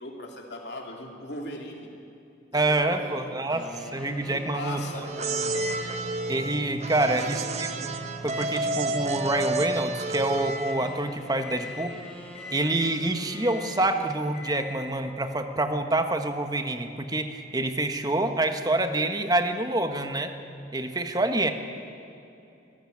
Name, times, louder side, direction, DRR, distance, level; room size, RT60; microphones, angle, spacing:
voice 1, 0.0-1.9 2.5-3.4 4.3-5.6 7.0-7.3, left 1 dB, 65° left, 0 dB, 3.4 m, -39 dB
voice 2, 2.5-5.0 6.3-7.9 8.2-12.0 12.5-20.3 20.7-21.5, right 2 dB, 20° right, 7 dB, 1.4 m, -27 dB
sound 1, 3.5-6.6 7.1-10.0 10.6-14.2, equal, 5° left, 3.9 m, -44 dB
sound 2, 5.0-10.9, right 2 dB, 40° right, 1.1 m, -31 dB
sound 3, 5.3-11.0 11.3-11.9 12.3-13.0 13.3-13.9 14.3-15.0, left 1 dB, 40° left, 6.9 m, -40 dB
25.5 x 16.0 x 8.8 m, 2.7 s
head